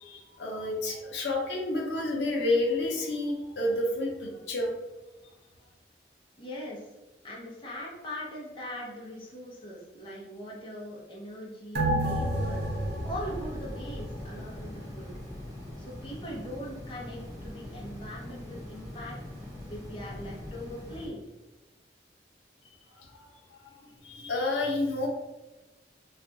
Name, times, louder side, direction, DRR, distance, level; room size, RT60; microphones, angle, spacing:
voice 1, 0.0-4.8 23.0-23.6 24.0-25.1, left 2 dB, 85° left, 0 dB, 0.6 m, -30 dB
voice 2, 6.4-6.8 7.2-12.6 13.0-15.1 15.8-19.2 19.6-21.2, equal, 30° left, -4 dB, 0.7 m, -41 dB
sound 1, 11.7-14.7 15.0-15.1, right 1 dB, 55° right, 0.8 m, -30 dB
sound 2, 12.3-21.1, left 1 dB, 20° right, 1.0 m, -42 dB
2.4 x 2.3 x 3.8 m, 1.1 s
head